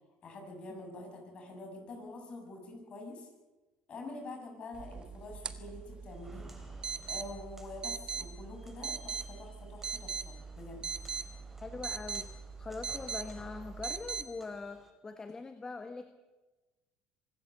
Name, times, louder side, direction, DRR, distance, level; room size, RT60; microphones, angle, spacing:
voice 1, 0.2-3.3 3.9-6.5 7.1-10.8, left 2 dB, 35° left, 3 dB, 7.1 m, -46 dB
sound 1, 4.7-14.2, right 6 dB, 30° right, 1.6 m, -41 dB
Walk footsteps, 6.1-14.9, right 1 dB, 10° right, 3.8 m, -56 dB
voice 2, 11.6-16.1, left 3 dB, 20° left, 8 dB, 1.4 m, -42 dB
24.0 x 13.5 x 7.9 m, 1.2 s
supercardioid pair, 110°, 3 cm